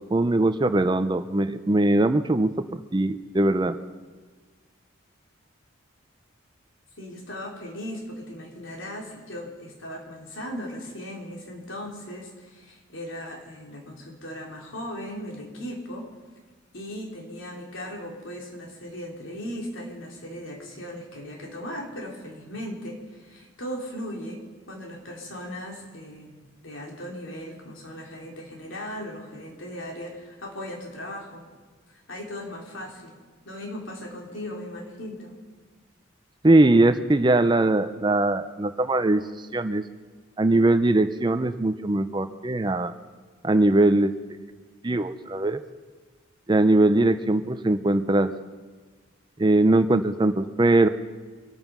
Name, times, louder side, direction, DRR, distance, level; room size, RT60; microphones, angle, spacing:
voice 1, 0.1-3.8 36.4-39.2 39.5-39.8 40.4-42.9 43.4-44.1 44.8-45.6 46.5-48.3 49.4-50.9, right 2 dB, 20° right, 11 dB, 0.5 m, -21 dB
voice 2, 7.0-16.1 16.7-26.4 26.6-31.5 31.9-33.2 33.4-35.3, equal, 75° left, 0 dB, 3.2 m, -38 dB
25.0 x 9.1 x 6.0 m, 1.4 s
head